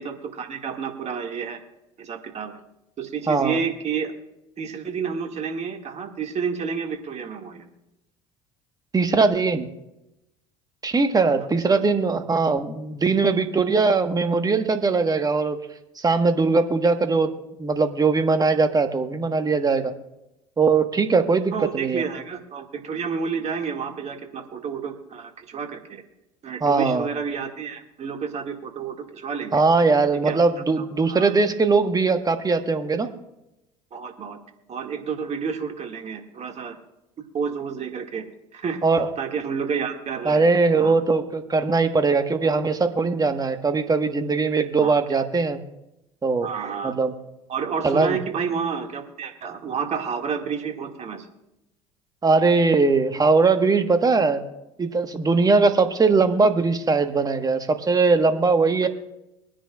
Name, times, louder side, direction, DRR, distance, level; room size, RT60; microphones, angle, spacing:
voice 1, 0.0-1.6 2.0-2.6 3.0-4.1 4.6-7.7 11.5-11.8 21.5-26.0 26.4-29.6 30.3-30.4 30.8-31.3 33.9-34.4 34.7-36.8 37.3-38.3 38.5-38.8 39.2-40.5 40.8-40.9 44.8-45.0 46.4-46.9 47.5-51.3, right 6 dB, 40° right, 4 dB, 2.1 m, -30 dB
voice 2, 3.3-3.6 8.9-9.7 10.8-15.6 16.0-17.3 17.6-19.9 20.6-22.0 26.6-27.1 29.5-33.1 38.8-39.1 40.2-45.6 46.2-46.5 46.8-47.1 47.8-48.2 52.2-54.4 54.8-58.9, right 4 dB, 20° right, 7 dB, 1.4 m, -20 dB
23.0 x 10.0 x 2.4 m, 0.90 s
hypercardioid pair, 70°, 17 cm